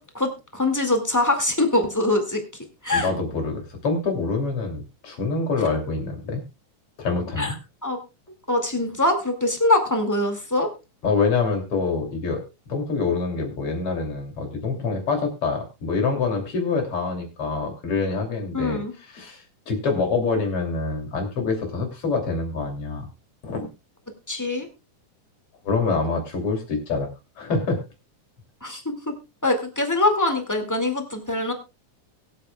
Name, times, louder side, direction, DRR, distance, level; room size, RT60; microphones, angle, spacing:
voice 1, 0.0-3.1 7.4-7.5 7.8-8.0 8.5-10.7 18.5-18.9 24.3-24.7 28.6-29.1 29.4-31.5, left 2 dB, 10° left, 5 dB, 1.5 m, -23 dB
voice 2, 2.9-6.4 7.0-7.6 11.0-18.8 19.1-23.1 23.4-23.7 25.6-27.1 27.4-27.8, left 4 dB, 45° left, 3 dB, 3.7 m, -26 dB
23.0 x 8.1 x 2.3 m, 0.27 s
omnidirectional pair, 3.6 m